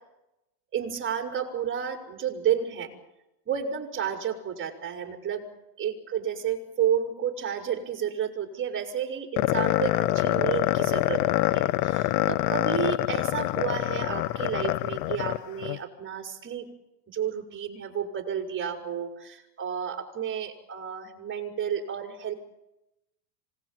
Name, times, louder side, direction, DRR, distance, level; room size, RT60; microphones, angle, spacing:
voice 1, 0.7-2.9 3.5-5.5 5.8-11.2 11.5-16.7 17.1-22.3, right 8 dB, 25° right, 3 dB, 5.5 m, -31 dB
sound 1, 9.4-15.8, left 16 dB, 70° left, 1.0 m, -25 dB
26.5 x 19.5 x 9.1 m, 0.91 s
supercardioid pair, 130°, 49 cm